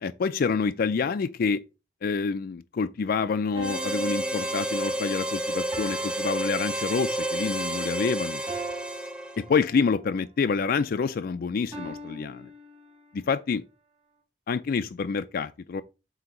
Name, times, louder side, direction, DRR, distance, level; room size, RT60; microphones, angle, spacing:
voice 1, 0.0-1.6 2.0-8.4 9.4-12.5 13.1-13.6 14.5-15.8, left 5 dB, 55° left, 0.4 m, -27 dB
sound 1, 3.5-7.3 8.5-10.0 11.7-13.3, right 2 dB, 30° right, 2.3 m, -42 dB
Harmonica, 3.6-9.5, right 1 dB, 5° right, 0.6 m, -30 dB
7.7 x 2.8 x 5.8 m
head